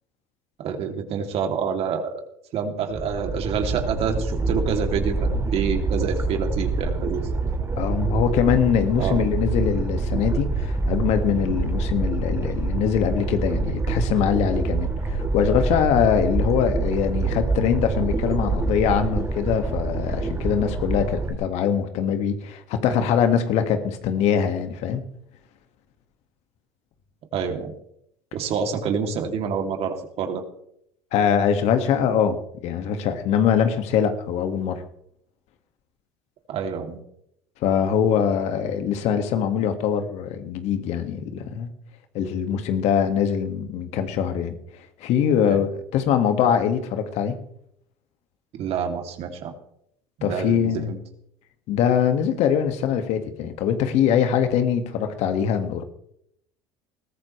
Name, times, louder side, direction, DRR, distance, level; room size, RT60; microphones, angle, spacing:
voice 1, 0.6-2.2 2.5-7.2 9.0-9.3 27.3-27.7 28.3-30.4 36.5-37.0 45.4-45.6 48.5-49.5 50.2-51.0, right 6 dB, 55° right, 4 dB, 3.0 m, -27 dB
sound 1, 2.9-21.3, right 3 dB, 25° right, 2.5 m, -26 dB
voice 2, 7.8-25.0 31.1-34.8 37.6-41.7 42.1-44.6 45.0-47.4 50.2-50.9 51.7-55.8, left 8 dB, 65° left, 7 dB, 2.1 m, -23 dB
21.0 x 14.5 x 3.4 m, 0.73 s
supercardioid pair, 85°, 12 cm